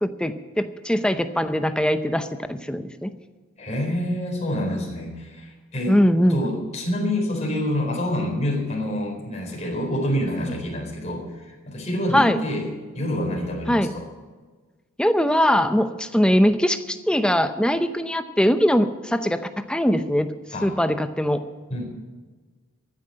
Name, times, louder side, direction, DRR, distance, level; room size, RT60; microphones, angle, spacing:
voice 1, 0.0-3.1 5.9-6.4 12.1-12.4 13.7-13.9 15.0-20.3 20.6-21.4, equal, 5° left, 9 dB, 0.7 m, -21 dB
voice 2, 3.6-5.9 6.3-12.7 12.9-14.1 20.5-20.8 21.7-21.9, left 1 dB, 30° left, -1 dB, 4.2 m, -27 dB
14.5 x 9.6 x 7.6 m, 1.4 s
head